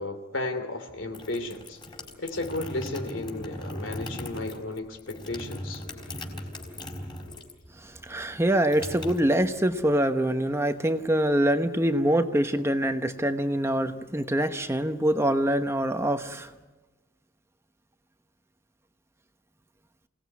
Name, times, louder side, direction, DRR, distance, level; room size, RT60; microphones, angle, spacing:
voice 1, 0.0-1.8 2.2-5.8 6.3-6.4, left 2 dB, 70° left, 7 dB, 3.0 m, -34 dB
sound 1, 0.9-7.7 7.9-9.8, left 1 dB, 25° left, 4.2 m, -39 dB
voice 2, 7.8-16.5, right 1 dB, 15° right, 8 dB, 1.0 m, -25 dB
27.5 x 18.0 x 9.5 m, 1.2 s
head